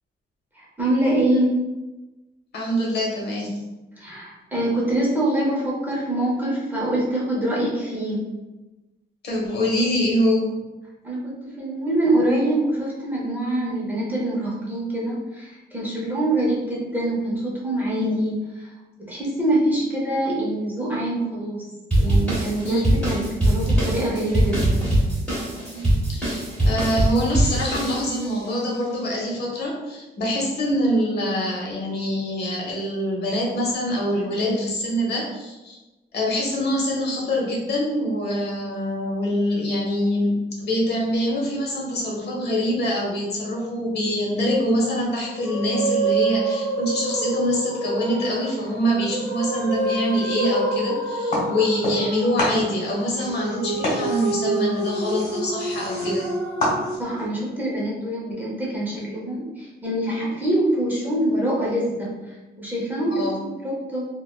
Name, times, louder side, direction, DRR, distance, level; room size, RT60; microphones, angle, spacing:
voice 1, 0.5-1.6 4.0-8.3 11.0-18.7 19.0-21.7 22.0-25.0 57.0-64.1, right 1 dB, 10° right, -6 dB, 0.6 m, -25 dB
voice 2, 2.5-3.6 9.2-10.5 16.4-16.5 22.6-22.8 25.7-35.8 36.1-56.3 63.1-63.4, equal, 65° left, -3 dB, 0.8 m, -24 dB
sound 1, 21.9-28.4, right 1 dB, 5° left, 1.1 m, -22 dB
sound 2, 45.2-57.0, right 3 dB, 60° right, 0.6 m, -27 dB
sound 3, 51.3-52.1 52.4-57.2, left 1 dB, 50° left, 1.3 m, -29 dB
3.3 x 2.1 x 2.3 m, 1.1 s
wide cardioid pair, 170°, 18 cm